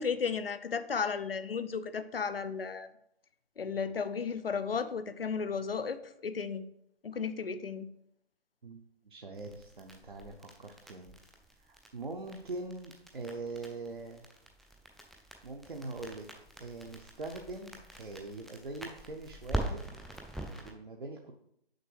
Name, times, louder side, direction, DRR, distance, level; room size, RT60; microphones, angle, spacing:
voice 1, 0.0-2.9 3.6-6.6 7.0-7.9, left 6 dB, 65° left, 13 dB, 0.7 m, -34 dB
voice 2, 8.6-11.1 11.6-14.2 15.4-16.3 16.6-19.8 20.6-21.3, right 3 dB, 55° right, 2 dB, 0.8 m, -42 dB
sound 1, 9.3-20.7, right 1 dB, ahead, 0.3 m, -43 dB
6.6 x 5.5 x 4.7 m, 0.75 s
hypercardioid pair, 175°, 31 cm